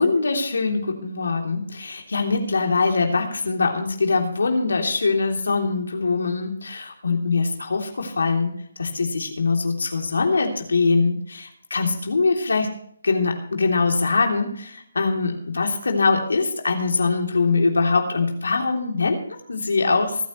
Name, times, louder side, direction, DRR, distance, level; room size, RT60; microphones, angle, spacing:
voice 1, 0.0-8.5 8.8-12.7 13.0-20.3, left 4 dB, 80° left, 2 dB, 3.1 m, -23 dB
25.0 x 9.3 x 3.2 m, 0.65 s
figure-of-eight pair, 150°, 0 cm